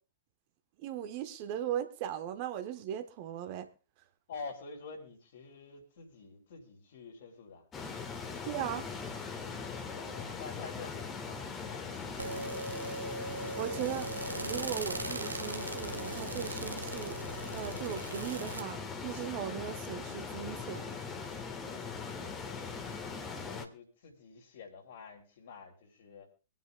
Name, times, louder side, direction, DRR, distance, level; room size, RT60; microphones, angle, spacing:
voice 1, 0.8-3.7 8.4-8.9 13.5-14.1 14.4-17.2 17.5-21.0, right 10 dB, 45° right, 1.2 m, -38 dB
voice 2, 4.3-7.7 9.9-12.3 21.6-22.7 23.2-26.3, left 4 dB, 55° left, 3.3 m, -48 dB
sound 1, 7.7-23.6, left 5 dB, 20° left, 1.6 m, -40 dB
sound 2, 12.2-18.6, right 2 dB, 80° right, 0.9 m, -39 dB
25.0 x 9.4 x 2.3 m
figure-of-eight pair, 105°, 0 cm